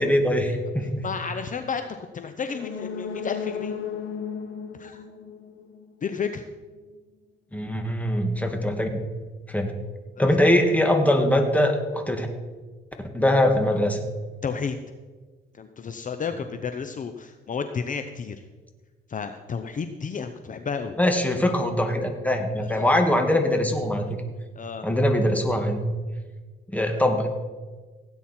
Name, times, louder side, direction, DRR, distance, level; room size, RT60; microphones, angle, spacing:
voice 1, 0.0-1.1 7.5-8.9 9.5-9.7 10.2-12.3 13.1-14.0 21.0-24.2 24.8-26.0 26.7-27.3, left 1 dB, 5° left, 4 dB, 2.0 m, -22 dB
voice 2, 1.0-3.7 4.7-5.0 6.0-6.4 10.2-10.6 14.4-14.8 15.5-18.4 19.1-20.9 22.6-23.0 24.5-24.9, left 6 dB, 40° left, 8 dB, 0.8 m, -32 dB
sound 1, 2.4-6.2 6.5-6.6, left 6 dB, 80° left, 1.2 m, -35 dB
17.0 x 9.1 x 4.4 m, 1.4 s
cardioid pair, 90°, 20 cm